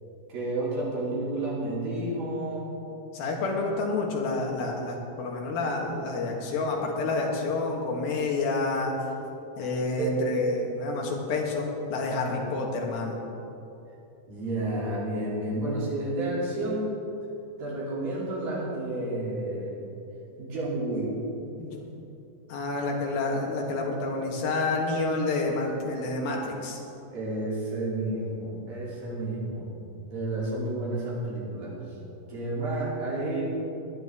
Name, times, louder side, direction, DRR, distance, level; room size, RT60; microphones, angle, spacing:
voice 1, 0.3-2.7 9.9-10.2 14.3-16.9 17.6-19.7 20.4-21.2 27.1-29.7 30.1-31.8 32.3-33.4, right 2 dB, 70° right, -6 dB, 4.8 m, -30 dB
voice 2, 3.1-8.9 9.6-13.2 21.6-21.8 22.5-26.8, left 3 dB, 80° left, -1 dB, 3.5 m, -29 dB
18.0 x 10.5 x 3.6 m, 2.8 s
omnidirectional pair, 4.2 m